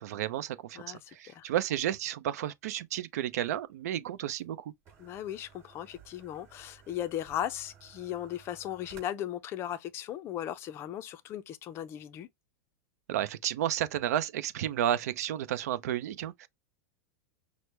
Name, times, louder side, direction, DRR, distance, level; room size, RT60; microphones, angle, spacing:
voice 1, 0.0-4.7 13.1-16.5, right 11 dB, 75° right, 0.6 m, -32 dB
voice 2, 0.7-1.5 5.0-12.3, left 11 dB, 30° left, 0.4 m, -37 dB
sound 1, 3.5-9.0, right 7 dB, 30° right, 2.7 m, -57 dB
6.0 x 2.1 x 3.2 m
supercardioid pair, 155°, 9 cm